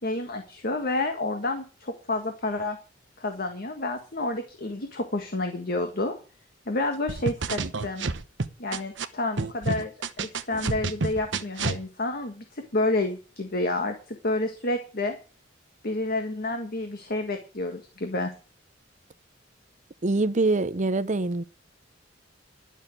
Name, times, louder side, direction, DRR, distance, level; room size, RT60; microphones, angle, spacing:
voice 1, 0.0-2.8 3.2-6.1 6.7-8.0 8.6-9.9 10.2-15.2 15.8-18.3, left 2 dB, 55° left, 1.7 m, -29 dB
sound 1, 7.1-9.0 9.4-11.8, right 4 dB, 70° right, 1.0 m, -29 dB
voice 2, 20.0-21.4, right 2 dB, 40° right, 0.7 m, -24 dB
12.0 x 6.4 x 9.0 m
head